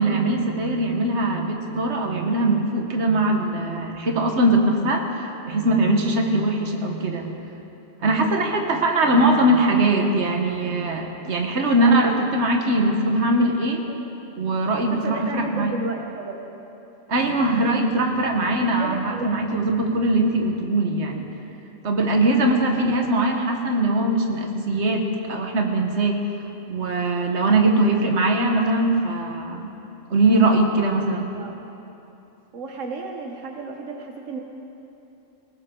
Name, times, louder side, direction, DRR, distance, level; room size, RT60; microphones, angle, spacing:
voice 1, 0.0-7.3 8.0-13.8 14.4-15.7 17.1-21.3 21.8-26.2 26.7-29.7 30.1-31.3, right 2 dB, 65° right, 3 dB, 1.6 m, -21 dB
voice 2, 11.8-12.2 13.9-14.0 14.9-16.4 18.5-19.3 22.4-22.6 31.3-31.5 32.5-34.4, right 4 dB, 85° right, 2 dB, 1.4 m, -33 dB
19.5 x 19.0 x 3.8 m, 3.0 s
omnidirectional pair, 1.3 m